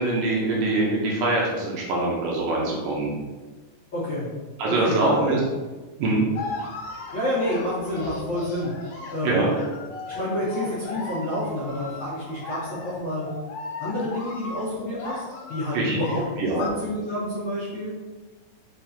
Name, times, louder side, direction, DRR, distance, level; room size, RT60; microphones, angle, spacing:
voice 1, 0.0-3.2 4.6-5.4 6.0-6.3 9.2-9.5 15.7-16.0 16.4-16.6, right 2 dB, 80° right, -3 dB, 2.3 m, -23 dB
voice 2, 3.9-4.3 4.6-5.4 7.1-8.7 9.1-9.6 10.1-13.3 13.8-15.2 15.5-17.9, left 1 dB, 60° left, -11 dB, 1.4 m, -28 dB
sound 1, 6.4-16.7, left 3 dB, 85° left, 2.2 m, -36 dB
5.4 x 3.5 x 2.8 m, 1.3 s
omnidirectional pair, 3.9 m